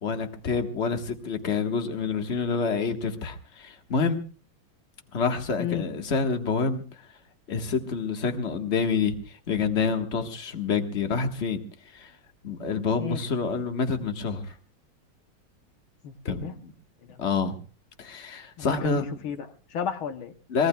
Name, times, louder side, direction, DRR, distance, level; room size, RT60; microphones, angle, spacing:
voice 1, 0.0-4.2 5.1-6.8 7.5-11.6 11.9-12.1 12.4-14.5 16.2-16.5 17.2-17.5 18.0-19.0 20.5-20.7, left 5 dB, 35° left, 5 dB, 1.6 m, -27 dB
voice 2, 16.0-16.5 17.1-17.3 18.6-20.3, left 8 dB, 75° left, 8 dB, 1.8 m, -33 dB
24.5 x 21.0 x 2.3 m, 0.38 s
omnidirectional pair, 2.3 m